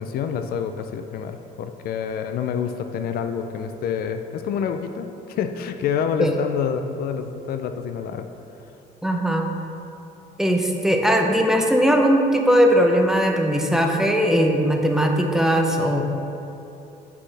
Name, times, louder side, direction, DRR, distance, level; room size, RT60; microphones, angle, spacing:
voice 1, 0.0-8.3, left 7 dB, 65° left, 7 dB, 0.4 m, -27 dB
voice 2, 9.0-9.5 10.4-16.1, equal, 5° right, 2 dB, 0.6 m, -19 dB
8.3 x 5.6 x 3.3 m, 2.8 s
cardioid pair, 110°, 17 cm